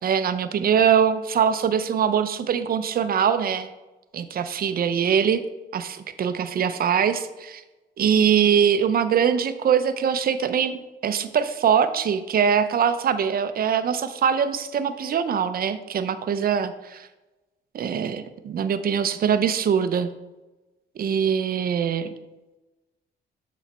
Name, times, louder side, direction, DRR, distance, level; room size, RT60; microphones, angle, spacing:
voice 1, 0.0-3.7 4.1-5.4 5.7-7.6 8.0-17.1 17.7-20.1 21.0-22.1, right 7 dB, 50° right, 11 dB, 0.6 m, -22 dB
7.1 x 4.1 x 4.2 m, 1.1 s
cardioid pair, 90°, 20 cm